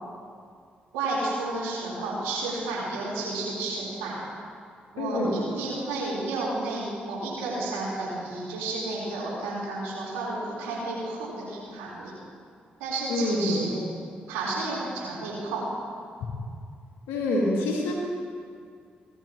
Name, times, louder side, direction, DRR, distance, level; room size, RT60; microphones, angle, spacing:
voice 1, 0.9-4.2 4.9-12.2 12.8-13.9 14.3-15.8, right 2 dB, 85° right, -7 dB, 4.3 m, -31 dB
voice 2, 5.0-5.4 13.1-13.7 17.1-17.9, left 1 dB, 80° left, -3 dB, 2.7 m, -26 dB
18.5 x 14.0 x 3.1 m, 2.2 s
hypercardioid pair, 45°, 4 cm